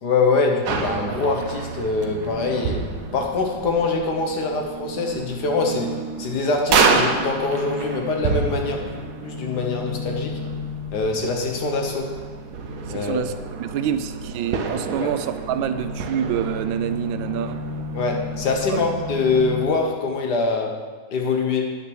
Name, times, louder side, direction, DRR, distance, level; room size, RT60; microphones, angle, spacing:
voice 1, 0.0-2.9 3.1-10.4 10.9-12.1 12.9-13.3 15.0-15.1 17.9-20.8 21.1-21.8, left 4 dB, 60° left, 2 dB, 1.6 m, -24 dB
sound 1, 0.6-19.7, right 4 dB, 65° right, 1.2 m, -28 dB
voice 2, 12.9-17.6 18.7-18.9, right 9 dB, 85° right, 11 dB, 1.3 m, -27 dB
9.4 x 5.9 x 6.2 m, 1.4 s
omnidirectional pair, 2.1 m